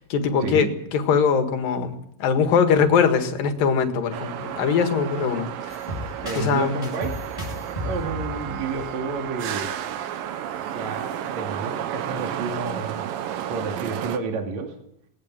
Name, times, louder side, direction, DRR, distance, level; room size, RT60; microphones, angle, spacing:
voice 1, 0.0-5.8 6.4-6.7, left 6 dB, 70° left, 7 dB, 3.5 m, -22 dB
sound 1, 4.1-14.2, right 10 dB, 75° right, 2.7 m, -32 dB
sound 2, 5.7-9.6, left 1 dB, 10° left, 5.1 m, -35 dB
voice 2, 6.2-7.1 7.8-9.7 10.6-13.1 13.5-14.8, right 4 dB, 55° right, 3 dB, 3.5 m, -30 dB
20.5 x 19.0 x 7.5 m, 0.74 s
omnidirectional pair, 4.2 m